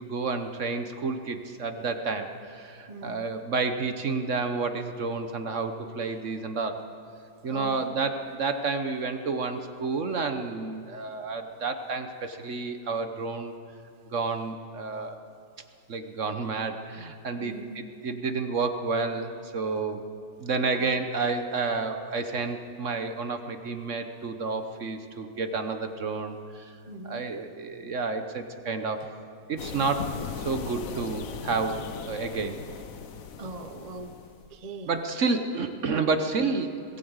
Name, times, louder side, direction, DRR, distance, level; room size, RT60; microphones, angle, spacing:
voice 1, 0.0-6.8 7.4-13.5 14.1-15.2 15.9-20.0 20.4-26.7 27.0-29.1 29.5-30.1 30.4-31.8 32.1-32.6 34.9-36.8, right 4 dB, 50° right, 7 dB, 1.2 m, -30 dB
voice 2, 2.9-3.3 7.5-7.8 17.4-17.8 20.8-20.9 26.9-27.2 33.4-34.1 34.5-35.0, right 2 dB, 30° right, 7 dB, 0.7 m, -40 dB
sound 1, 29.6-34.5, left 6 dB, 55° left, 1.2 m, -38 dB
21.0 x 16.0 x 8.0 m, 2.4 s
omnidirectional pair, 1.9 m